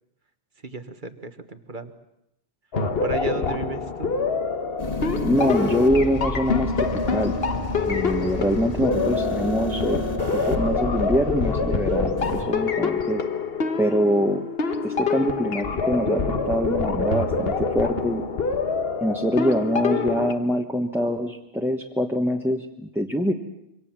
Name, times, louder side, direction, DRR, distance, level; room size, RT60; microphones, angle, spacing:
voice 1, 0.6-1.9 3.0-4.1, right 4 dB, 50° right, 9 dB, 1.6 m, -33 dB
sound 1, 2.7-20.3, left 5 dB, 65° left, 1.5 m, -26 dB
sound 2, 4.8-12.4, left 1 dB, 35° left, 2.7 m, -31 dB
voice 2, 5.2-7.4 7.9-10.0 10.3-13.2 13.8-14.4 14.8-18.2 19.0-23.3, equal, ahead, 2 dB, 1.3 m, -24 dB
26.5 x 24.5 x 7.5 m, 0.82 s
omnidirectional pair, 1.1 m